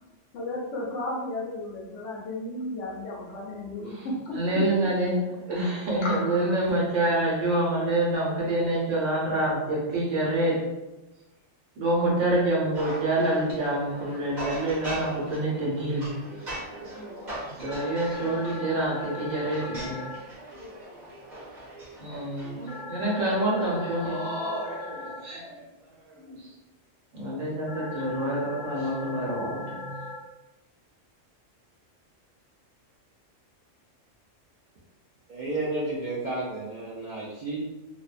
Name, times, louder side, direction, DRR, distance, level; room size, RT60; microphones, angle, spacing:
voice 1, 0.3-4.6 6.0-6.5, left 2 dB, 75° left, -1 dB, 0.9 m, -34 dB
voice 2, 4.3-5.2 5.5-10.6 11.8-16.1 17.6-20.0 22.0-22.6 22.9-25.6 26.1-26.5 27.1-29.9, right 1 dB, 80° right, -4 dB, 1.2 m, -27 dB
sound 1, 12.7-22.8, right 1 dB, 40° right, 1.1 m, -40 dB
sound 2, 17.7-20.2 22.7-25.2 27.7-30.2, left 2 dB, 90° left, 0.3 m, -39 dB
voice 3, 35.3-37.6, right 2 dB, 60° right, -8 dB, 0.4 m, -32 dB
2.5 x 2.1 x 2.4 m, 1.0 s
omnidirectional pair, 1.3 m